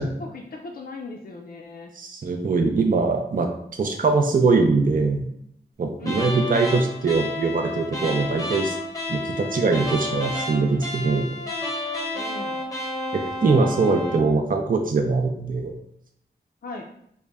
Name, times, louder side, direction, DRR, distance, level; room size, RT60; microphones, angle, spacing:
voice 1, 0.0-1.9 6.0-6.4 12.1-12.6 16.6-16.8, left 3 dB, 55° left, 0 dB, 0.4 m, -38 dB
voice 2, 2.0-5.3 5.8-8.8 9.1-11.3 13.1-15.8, right 4 dB, 50° right, 3 dB, 0.4 m, -22 dB
sound 1, 6.0-14.3, left 1 dB, 20° left, 0.7 m, -30 dB
3.8 x 2.1 x 3.4 m, 0.70 s
wide cardioid pair, 70°, 18 cm